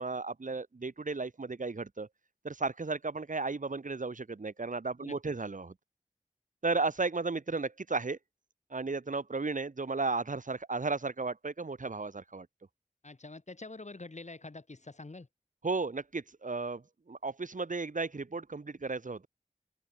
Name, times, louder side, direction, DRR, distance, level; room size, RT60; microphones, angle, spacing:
voice 1, 0.0-2.1 2.4-5.7 6.6-8.2 8.7-12.5 15.6-19.3, right 3 dB, 70° right, 2.0 m, -34 dB
voice 2, 13.0-15.3, left 3 dB, 60° left, 4.1 m, -46 dB
open air
wide cardioid pair, 45°, 14 cm